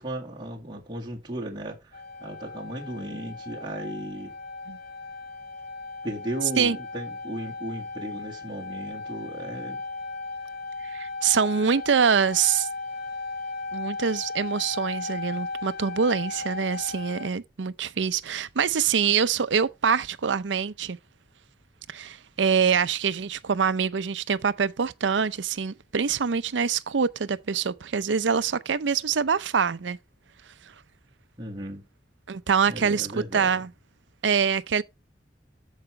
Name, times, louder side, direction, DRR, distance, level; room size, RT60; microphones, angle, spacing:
voice 1, 0.0-4.3 6.0-9.8 31.4-31.8 32.7-33.5, right 1 dB, 25° right, 2.0 m, -36 dB
sound 1, 1.9-17.3, left 3 dB, 55° left, 1.3 m, -36 dB
voice 2, 10.9-12.7 13.7-21.0 21.9-30.0 32.3-33.1 33.3-33.7 34.2-34.8, right 6 dB, 85° right, 0.6 m, -25 dB
14.0 x 5.0 x 3.2 m
head